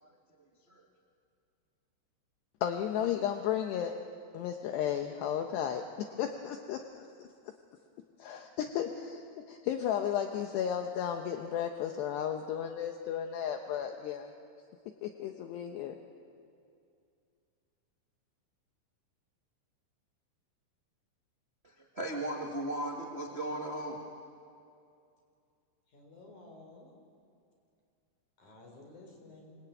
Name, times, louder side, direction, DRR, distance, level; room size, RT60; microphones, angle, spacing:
voice 1, 2.6-4.0 4.3-7.3 8.2-14.3 15.0-16.0, left 9 dB, 75° left, 4 dB, 2.9 m, -34 dB
voice 2, 21.6-24.0, right 1 dB, 25° right, -1 dB, 1.3 m, -37 dB
voice 3, 25.9-26.9 28.4-29.6, left 2 dB, 40° left, 1 dB, 6.2 m, -53 dB
26.0 x 25.5 x 9.1 m, 2.4 s
omnidirectional pair, 5.5 m